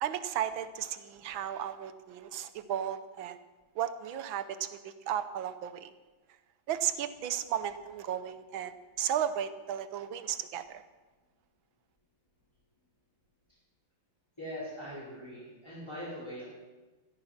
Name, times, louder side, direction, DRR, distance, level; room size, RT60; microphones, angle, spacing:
voice 1, 0.0-3.4 3.7-5.9 6.7-10.8, right 10 dB, 70° right, 12 dB, 1.5 m, -34 dB
voice 2, 14.4-16.4, equal, 10° left, -9 dB, 4.7 m, -41 dB
15.0 x 13.5 x 5.9 m, 1.2 s
omnidirectional pair, 2.4 m